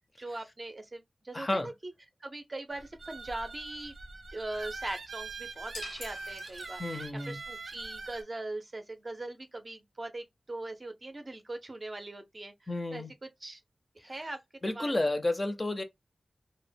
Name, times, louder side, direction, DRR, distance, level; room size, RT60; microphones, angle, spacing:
voice 1, 0.2-1.9 2.2-3.9 4.3-12.5 12.9-13.6 14.0-14.4 14.6-15.1, right 2 dB, 40° right, 0.5 m, -41 dB
voice 2, 1.3-1.7 6.8-7.4 12.7-13.1 14.6-15.8, left 2 dB, 30° left, 0.4 m, -31 dB
sound 1, 2.7-8.2, right 3 dB, 90° right, 0.5 m, -43 dB
sound 2, 5.7-7.2, left 3 dB, 85° left, 0.5 m, -46 dB
2.1 x 2.0 x 3.2 m
wide cardioid pair, 85°, 0 cm